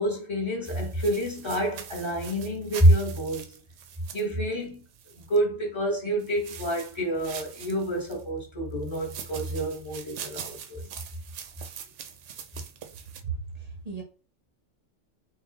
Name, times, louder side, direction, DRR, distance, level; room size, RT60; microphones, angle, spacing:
voice 1, 0.0-3.5 4.1-4.8 5.2-10.8, right 1 dB, 25° left, 1.2 m, -27 dB
sound 1, 0.6-5.4 6.2-8.2 8.8-13.2, right 8 dB, 75° right, 0.9 m, -43 dB
voice 2, 13.2-14.0, right 5 dB, 40° right, 0.8 m, -35 dB
3.6 x 2.3 x 3.8 m
omnidirectional pair, 1.3 m